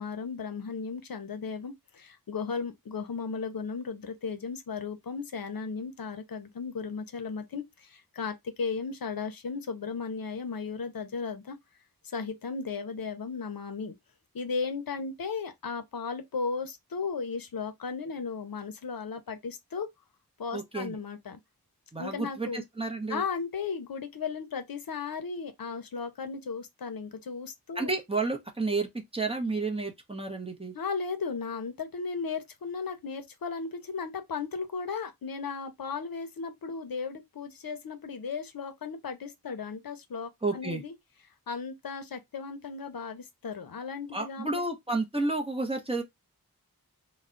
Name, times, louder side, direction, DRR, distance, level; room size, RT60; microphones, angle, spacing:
voice 1, 0.0-11.6 12.0-13.9 14.3-19.9 20.4-21.4 22.0-22.6 23.1-27.9 30.7-40.9 41.5-44.6, left 5 dB, 70° left, 0.5 m, -35 dB
voice 2, 20.5-21.0 21.9-23.2 27.8-30.7 40.4-40.8 44.1-46.0, right 3 dB, 15° right, 0.6 m, -31 dB
2.2 x 2.0 x 3.6 m
wide cardioid pair, 60°, 37 cm